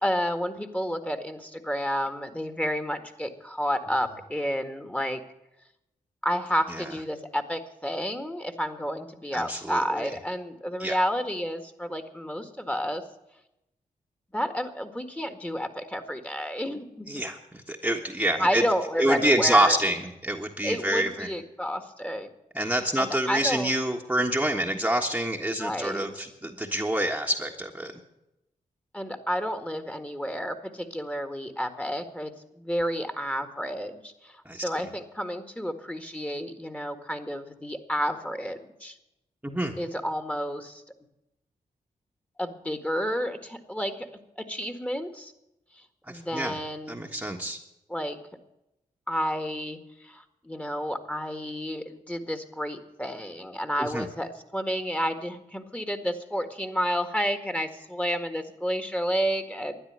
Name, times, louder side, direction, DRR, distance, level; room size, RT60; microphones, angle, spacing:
voice 1, 0.0-5.2 6.2-13.0 14.3-17.1 18.4-19.8 20.6-22.3 23.0-23.7 25.6-26.1 28.9-39.0 39.8-40.8 42.4-43.9 44.4-45.3 46.1-47.0 47.9-48.2 49.1-59.8, equal, 10° left, 8 dB, 1.8 m, -30 dB
voice 2, 9.3-10.1 10.8-11.0 17.1-18.6 19.0-21.3 22.5-27.9 34.4-34.7 39.4-39.7 46.1-46.6 46.9-47.6 53.8-54.1, right 1 dB, 10° right, 1 dB, 1.4 m, -27 dB
12.5 x 9.8 x 9.5 m, 0.89 s
supercardioid pair, 45°, 15 cm